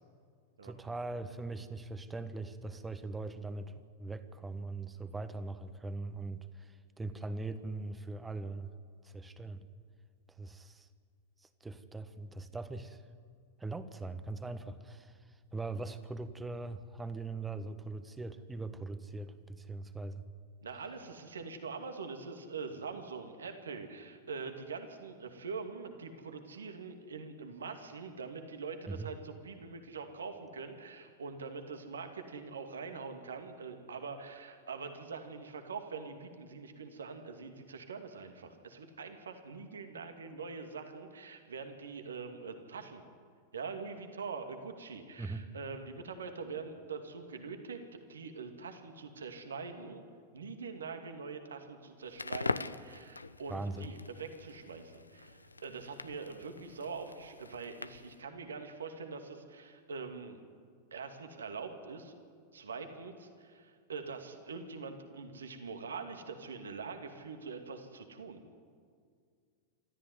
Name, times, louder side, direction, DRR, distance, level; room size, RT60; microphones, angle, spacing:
voice 1, 0.6-8.7 9.0-9.7 10.3-10.9 11.4-13.0 13.6-20.2 28.9-29.1 45.2-45.5 53.5-53.9, right 3 dB, 10° right, 11 dB, 1.4 m, -41 dB
voice 2, 20.6-43.0 43.5-47.8 48.1-50.0 50.3-60.4 60.9-62.1 62.5-68.4, right 5 dB, 70° right, 6 dB, 2.4 m, -44 dB
Crackle, 52.1-58.2, left 3 dB, 80° left, 0.6 m, -42 dB
26.5 x 14.0 x 9.7 m, 2.1 s
figure-of-eight pair, 90°, 0 cm